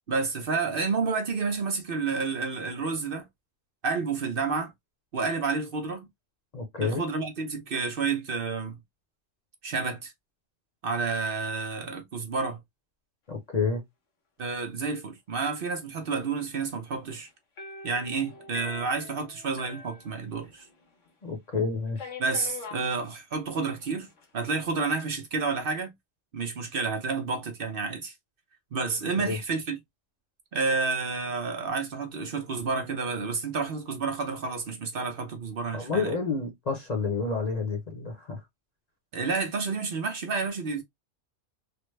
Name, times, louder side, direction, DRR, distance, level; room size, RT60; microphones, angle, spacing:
voice 1, 0.1-3.3 3.8-4.7 5.1-6.1 6.8-8.8 9.6-10.1 10.8-12.6 14.4-17.3 17.8-20.7 22.2-24.1 24.3-25.9 26.3-28.1 28.7-29.8 30.5-36.2 39.1-40.8, right 4 dB, 55° right, 0.9 m, -30 dB
voice 2, 6.5-7.0 13.3-13.8 21.2-22.1 29.2-29.4 35.7-38.4, left 4 dB, 40° left, 0.8 m, -29 dB
sound 1, 17.6-20.8 21.1-21.2 22.0-22.9 23.8-24.2, left 5 dB, 85° left, 1.4 m, -43 dB
3.4 x 2.1 x 3.1 m
omnidirectional pair, 1.2 m